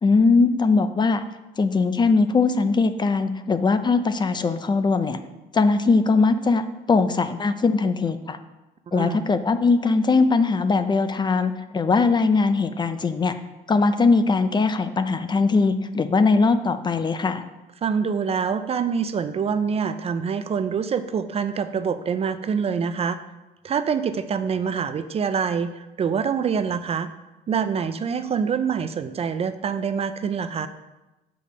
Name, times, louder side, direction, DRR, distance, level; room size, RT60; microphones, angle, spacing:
voice 1, 0.0-1.2 1.6-5.2 5.5-8.4 8.9-13.4 13.7-17.4, left 4 dB, 25° left, 10 dB, 0.6 m, -20 dB
voice 2, 8.9-9.2 17.8-23.2 23.6-27.1 27.5-30.7, right 6 dB, 35° right, 11 dB, 0.5 m, -25 dB
6.9 x 5.0 x 6.6 m, 1.0 s
cardioid pair, 110°, 17 cm